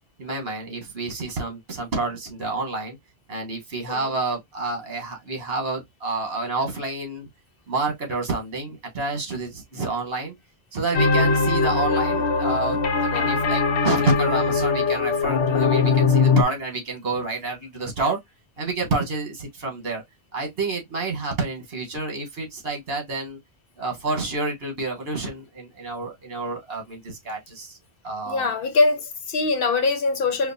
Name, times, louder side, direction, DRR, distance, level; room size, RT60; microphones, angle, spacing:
voice 1, 0.2-2.9 3.3-7.3 7.7-10.3 10.7-18.2 18.6-20.0 20.3-23.4 23.8-27.8 28.0-28.5, right 3 dB, 65° right, 1.4 m, -29 dB
sound 1, 10.9-16.4, left 4 dB, 85° left, 1.0 m, -21 dB
voice 2, 28.3-30.5, left 3 dB, 60° left, 0.9 m, -23 dB
4.6 x 2.3 x 2.6 m
omnidirectional pair, 1.1 m